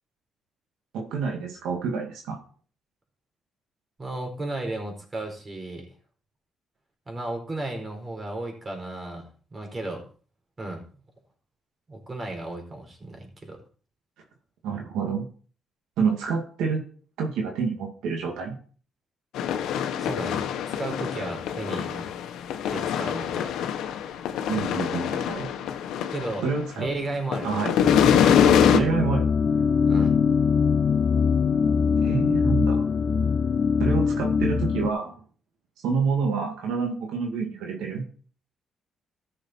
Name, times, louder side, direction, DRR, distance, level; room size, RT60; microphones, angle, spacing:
voice 1, 0.9-2.4 14.6-15.3 16.0-16.8 17.2-18.6 24.5-25.5 26.4-26.9 27.4-27.7 28.7-29.2 32.0-32.9 33.8-35.1 35.8-38.0, right 5 dB, 90° right, 1 dB, 2.2 m, -27 dB
voice 2, 4.0-5.9 7.1-10.0 10.6-11.0 11.9-13.6 19.9-20.4 20.7-22.0 22.7-23.6 26.1-26.5 26.7-27.5 29.9-30.2, right 2 dB, 30° right, 2 dB, 4.3 m, -34 dB
sound 1, 19.3-26.9 27.2-28.8, left 9 dB, 85° left, 1.1 m, -25 dB
sound 2, 27.8-34.9, left 6 dB, 45° left, 0.6 m, -22 dB
14.0 x 6.6 x 4.4 m, 0.42 s
cardioid pair, 90°, 0 cm